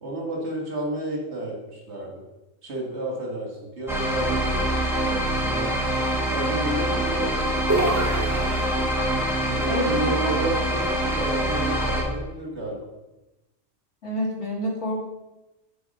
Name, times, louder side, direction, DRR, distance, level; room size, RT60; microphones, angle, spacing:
voice 1, 0.0-2.2 2.6-4.6 4.9-5.9 6.3-8.2 9.5-12.8, right 1 dB, 65° right, -1 dB, 2.0 m, -31 dB
sound 1, 3.9-12.0, right 1 dB, ahead, 1.4 m, -25 dB
sound 2, 7.7-9.2, right 1 dB, 20° right, 0.6 m, -27 dB
voice 2, 9.7-10.4 14.0-15.1, left 1 dB, 70° left, -3 dB, 2.5 m, -28 dB
8.2 x 4.8 x 5.3 m, 1.0 s
omnidirectional pair, 1.3 m